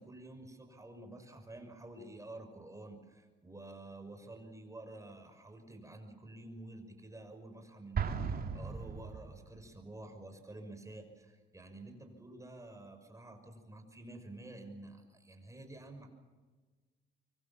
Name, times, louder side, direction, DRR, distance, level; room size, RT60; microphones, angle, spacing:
voice 1, 0.0-16.1, right 2 dB, 15° right, 5 dB, 6.0 m, -50 dB
Explosion, 7.9-9.6, right 6 dB, 50° right, 2.9 m, -36 dB
25.0 x 24.0 x 7.3 m, 1.4 s
cardioid pair, 90°, 20 cm